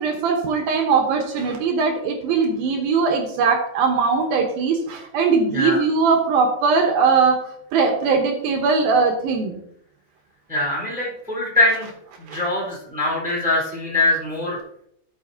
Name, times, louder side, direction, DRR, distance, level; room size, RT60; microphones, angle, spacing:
voice 1, 0.0-7.4 7.7-9.6 12.3-12.4, right 5 dB, 70° right, 3 dB, 2.5 m, -20 dB
voice 2, 10.5-11.9 12.3-14.6, left 2 dB, ahead, -6 dB, 3.2 m, -22 dB
12.0 x 6.8 x 2.8 m, 0.72 s
omnidirectional pair, 4.9 m